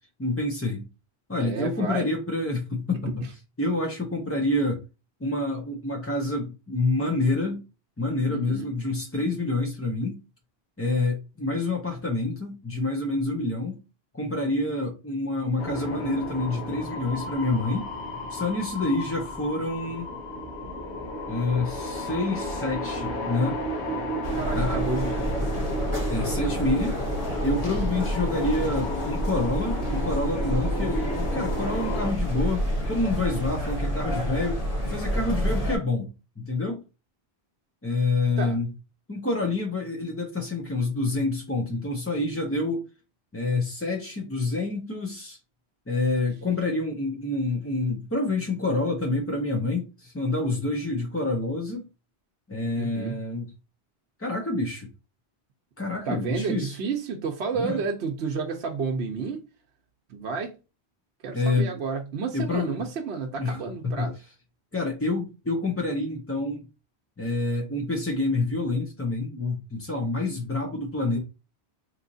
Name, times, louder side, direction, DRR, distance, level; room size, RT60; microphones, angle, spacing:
voice 1, 0.2-0.9 1.3-3.1 3.6-4.8 5.2-7.6 8.0-10.2 10.8-13.8 14.1-17.9 18.3-20.1 21.3-23.6 24.5-24.9 26.1-27.0 27.4-34.6 34.9-36.1 36.4-36.8 37.8-38.7 39.1-42.8 43.3-45.4 45.9-51.9 52.5-53.5 54.2-54.9 55.8-56.8 57.5-57.8 61.3-61.7 62.3-62.8 63.4-64.1 64.7-66.6 67.2-71.2, left 2 dB, 20° left, 0.4 m, -27 dB
voice 2, 1.4-2.1 8.3-8.7 18.8-18.9 24.3-25.2 27.8-28.1 30.4-30.5 38.4-38.6 52.8-53.2 56.1-59.4 60.1-60.5 61.2-64.1, right 5 dB, 70° right, 0.9 m, -31 dB
sound 1, 15.6-32.1, equal, 85° left, 1.2 m, -33 dB
sound 2, 24.2-35.8, equal, 35° left, 1.0 m, -28 dB
4.0 x 3.0 x 2.6 m
omnidirectional pair, 1.1 m